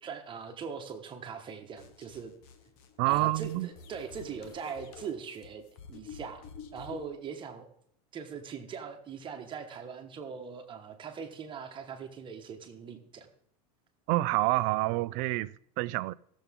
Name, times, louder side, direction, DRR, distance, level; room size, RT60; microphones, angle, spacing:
voice 1, 0.0-2.3 3.1-6.4 6.7-7.7 8.1-13.3, right 6 dB, 25° right, 1.4 m, -41 dB
sound 1, 1.8-7.1, left 5 dB, 55° left, 1.2 m, -49 dB
voice 2, 3.0-3.7 14.1-16.1, right 19 dB, 55° right, 0.4 m, -28 dB
17.0 x 7.1 x 3.7 m
supercardioid pair, 135°, 18 cm